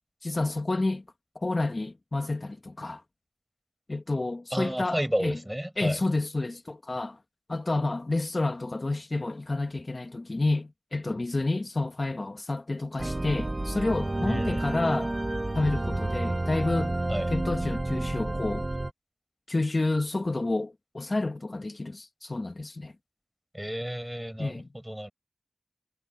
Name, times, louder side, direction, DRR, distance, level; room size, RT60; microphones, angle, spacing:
voice 1, 0.2-1.0 1.3-3.0 3.9-5.4 5.8-7.2 7.5-15.1 15.5-17.0 17.3-18.7 19.5-22.9 24.4-24.7, left 2 dB, 55° left, 1.5 m, -29 dB
voice 2, 4.5-6.0 14.2-15.0 17.1-17.3 23.5-25.1, equal, 10° right, 6.8 m, -32 dB
sound 1, 13.0-18.9, right 2 dB, 40° right, 1.8 m, -30 dB
wide cardioid pair, 40°, 0 cm